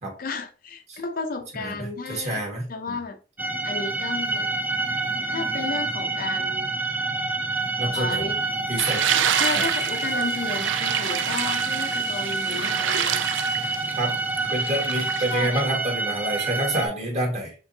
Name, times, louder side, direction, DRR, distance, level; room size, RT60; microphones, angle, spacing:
voice 1, 0.2-3.2 3.6-4.5 5.3-6.7 7.9-8.4 9.3-13.5 15.2-15.6, left 4 dB, 50° left, 0.6 m, -33 dB
voice 2, 2.1-3.0 7.8-8.3 8.7-9.0 14.0-14.1 14.5-17.5, right 1 dB, 40° right, 1.8 m, -27 dB
sound 1, 3.4-16.9, right 3 dB, 10° right, 0.4 m, -27 dB
sound 2, 8.8-15.4, right 10 dB, 80° right, 0.4 m, -28 dB
5.9 x 3.1 x 2.7 m
head